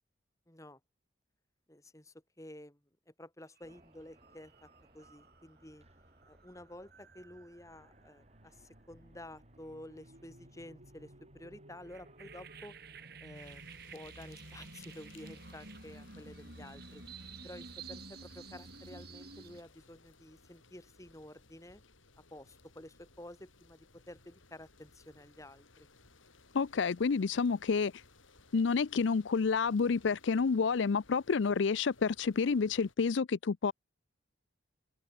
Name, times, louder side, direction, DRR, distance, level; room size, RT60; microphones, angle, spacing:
voice 1, 0.5-0.8 1.7-2.8 3.1-4.7 4.9-5.9 6.3-12.8 13.2-17.0 17.4-21.8 22.3-25.9, left 1 dB, 15° left, 2.4 m, -51 dB
sound 1, 3.6-13.2, right 1 dB, 30° right, 7.9 m, -66 dB
sound 2, 3.6-3.8 4.1-19.6, right 3 dB, 50° right, 3.9 m, -52 dB
sound 3, 13.3-32.9, left 3 dB, 85° left, 4.5 m, -61 dB
voice 2, 26.5-28.0 28.5-33.7, left 5 dB, 70° left, 0.5 m, -29 dB
open air
head